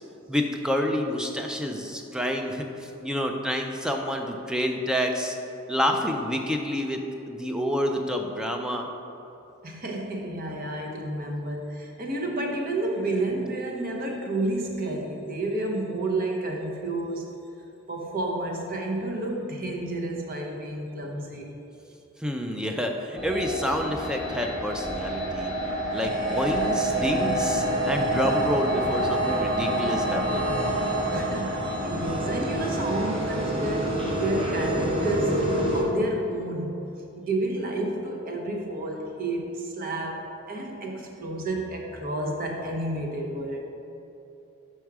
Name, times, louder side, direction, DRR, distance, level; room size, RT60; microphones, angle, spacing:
voice 1, 0.3-5.4 5.7-7.0 7.3-8.9 22.2-25.5 25.9-30.6, equal, 5° right, 3 dB, 0.4 m, -28 dB
voice 2, 9.6-17.3 17.9-21.5 31.1-36.9 37.2-43.6, right 2 dB, 45° right, 0 dB, 0.8 m, -30 dB
sound 1, 23.2-35.8, right 1 dB, 25° right, 1.1 m, -27 dB
6.0 x 4.5 x 4.7 m, 2.9 s
head